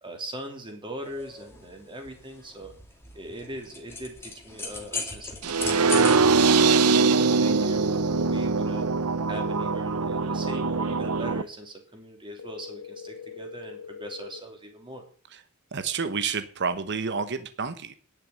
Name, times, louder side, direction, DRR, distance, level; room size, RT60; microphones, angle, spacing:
voice 1, 0.0-2.7 3.1-8.9 9.3-15.0, right 1 dB, 20° right, 4 dB, 3.0 m, -40 dB
sound 1, 1.0-6.2, left 3 dB, 10° left, 2.3 m, -37 dB
sound 2, 5.4-11.4, right 4 dB, 85° right, 0.8 m, -22 dB
sound 3, 6.4-8.4 12.4-14.4, left 7 dB, 80° left, 0.8 m, -42 dB
voice 2, 15.7-17.9, right 5 dB, 50° right, 11 dB, 1.0 m, -29 dB
10.5 x 6.9 x 8.7 m, 0.43 s
head